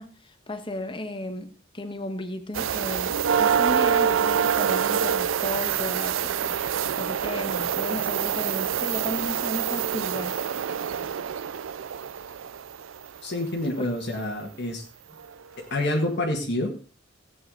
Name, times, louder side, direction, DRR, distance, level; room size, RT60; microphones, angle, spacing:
voice 1, 0.0-10.4 13.8-13.9 15.1-15.2, left 1 dB, 25° left, 1.4 m, -35 dB
sound 1, 2.5-13.2 15.2-15.3 15.9-16.0, right 8 dB, 85° right, 0.5 m, -26 dB
voice 2, 13.2-14.8 15.6-16.8, left 1 dB, 60° left, 1.8 m, -28 dB
16.0 x 8.5 x 3.8 m
head